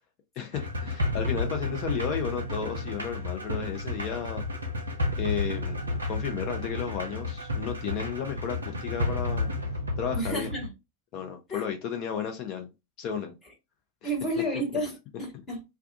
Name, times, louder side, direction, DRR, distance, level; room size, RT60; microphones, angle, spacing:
voice 1, 0.4-4.4 5.2-9.5 10.0-10.5 11.1-12.7 13.0-13.3 14.0-14.1, left 7 dB, 40° left, 0.6 m, -33 dB
sound 1, 0.5-10.7, left 2 dB, 75° right, 0.5 m, -31 dB
voice 2, 10.1-10.7 11.5-11.6 14.0-15.6, equal, 20° left, 1.3 m, -31 dB
2.3 x 2.3 x 2.6 m
figure-of-eight pair, 90°, 0 cm